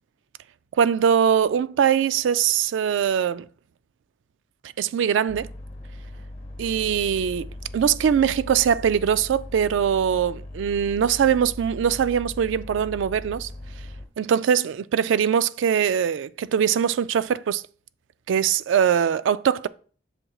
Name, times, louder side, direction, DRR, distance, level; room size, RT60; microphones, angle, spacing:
voice 1, 0.8-3.5 4.8-5.5 6.6-13.5 14.2-17.6 18.3-19.7, right 8 dB, 85° right, 0.3 m, -22 dB
sound 1, 5.3-14.1, left 1 dB, 35° left, 1.1 m, -39 dB
7.7 x 6.1 x 2.3 m
head